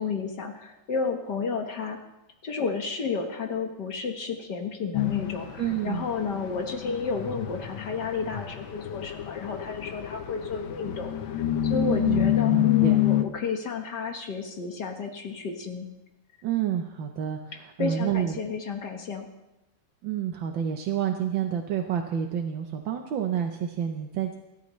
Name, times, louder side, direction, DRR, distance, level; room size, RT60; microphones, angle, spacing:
voice 1, 0.0-2.0 2.4-15.9 17.8-19.3, left 5 dB, 60° left, 3 dB, 2.0 m, -32 dB
sound 1, 4.9-13.2, left 12 dB, 90° left, 1.7 m, -27 dB
voice 2, 5.5-6.1 11.7-13.1 16.4-18.4 20.0-24.4, right 9 dB, 75° right, 4 dB, 1.6 m, -29 dB
24.5 x 12.5 x 3.2 m, 0.93 s
omnidirectional pair, 2.1 m